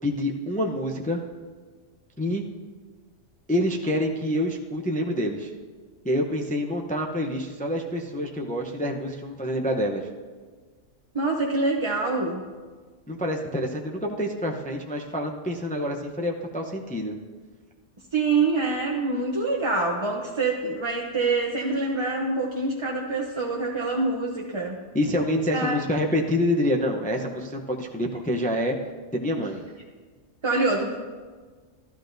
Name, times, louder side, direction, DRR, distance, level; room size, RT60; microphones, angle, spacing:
voice 1, 0.0-1.2 2.2-2.4 3.5-5.5 6.0-10.1 13.1-17.1 24.9-28.8 29.1-29.6, equal, 10° left, 1 dB, 0.5 m, -27 dB
voice 2, 11.1-12.4 18.1-24.8 25.5-25.8 30.4-31.0, right 3 dB, 30° right, -1 dB, 0.7 m, -25 dB
13.5 x 13.0 x 2.6 m, 1.5 s
omnidirectional pair, 1.3 m